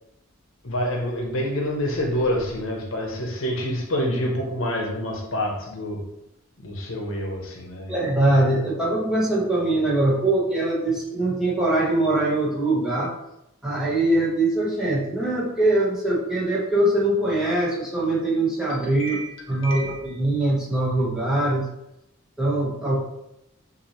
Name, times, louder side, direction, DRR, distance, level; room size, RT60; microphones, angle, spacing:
voice 1, 0.6-6.0 6.6-8.0 19.0-20.1, equal, 70° left, 1 dB, 0.9 m, -27 dB
voice 2, 7.9-13.1 13.6-19.2 19.5-21.6 22.4-23.0, right 2 dB, 5° right, -7 dB, 1.1 m, -22 dB
5.9 x 2.7 x 3.0 m, 0.84 s
head